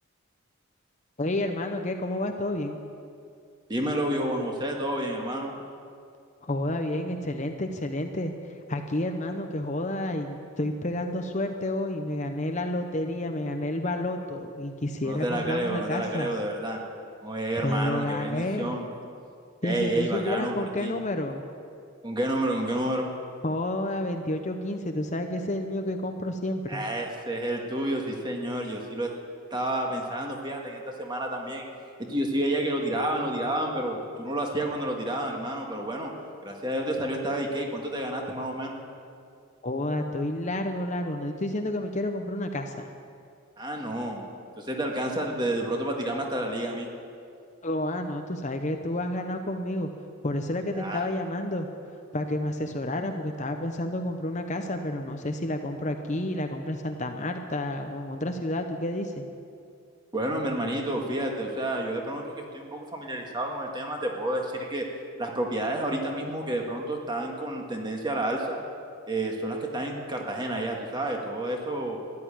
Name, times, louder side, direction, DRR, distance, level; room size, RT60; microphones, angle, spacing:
voice 1, 1.2-2.8 6.4-8.3 8.7-16.3 17.6-18.8 19.6-21.4 23.4-26.8 39.6-42.9 47.6-49.9 50.2-51.7 52.1-59.2, left 1 dB, 35° left, 5 dB, 0.8 m, -30 dB
voice 2, 3.7-5.5 15.0-16.8 17.2-18.9 19.6-20.9 22.0-23.1 26.7-29.1 29.5-31.7 32.0-36.1 36.4-38.8 43.6-44.3 44.6-46.9 50.7-51.0 60.1-64.8 65.2-68.6 69.1-72.0, right 1 dB, 20° right, 1 dB, 1.8 m, -30 dB
14.0 x 11.5 x 8.8 m, 2.4 s
head